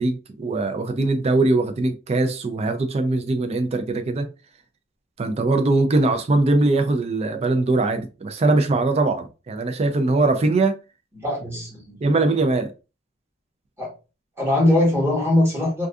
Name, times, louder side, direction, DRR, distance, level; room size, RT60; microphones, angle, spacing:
voice 1, 0.0-4.3 5.2-10.8 12.0-12.7, right 2 dB, 30° right, 0.3 m, -21 dB
voice 2, 11.1-12.0 13.8-13.9 14.4-15.9, left 1 dB, 15° right, 1.0 m, -21 dB
2.6 x 2.3 x 2.3 m
head